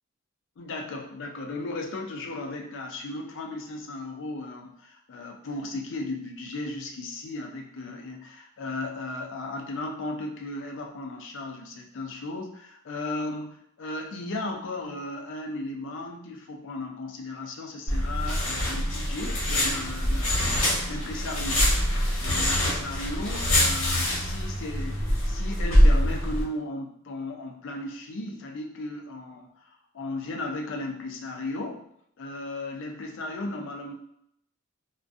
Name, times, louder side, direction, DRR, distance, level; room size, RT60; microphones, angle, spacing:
voice 1, 0.6-31.9 32.2-33.9, left 2 dB, 65° left, 3 dB, 0.4 m, -36 dB
sound 1, 17.9-26.4, equal, 90° left, 1.0 m, -24 dB
2.3 x 2.2 x 2.5 m, 0.72 s
head